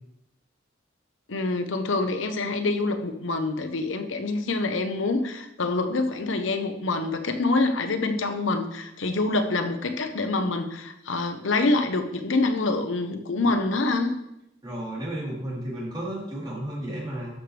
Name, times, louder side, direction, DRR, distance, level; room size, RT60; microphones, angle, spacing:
voice 1, 1.3-14.1, left 3 dB, 75° left, 7 dB, 0.9 m, -26 dB
voice 2, 14.6-17.4, right 1 dB, 25° right, -7 dB, 3.8 m, -33 dB
12.0 x 6.8 x 3.4 m, 0.86 s
head